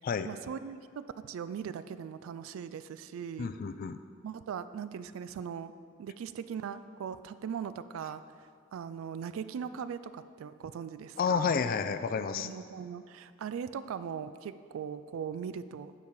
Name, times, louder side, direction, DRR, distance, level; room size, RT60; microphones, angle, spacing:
voice 1, 0.2-3.5 4.2-5.7 6.0-8.2 8.7-11.5 12.3-15.9, right 7 dB, 85° right, 13 dB, 0.3 m, -39 dB
voice 2, 3.4-4.0 11.2-12.5, left 6 dB, 45° left, 11 dB, 0.3 m, -30 dB
7.2 x 4.8 x 5.2 m, 2.3 s
head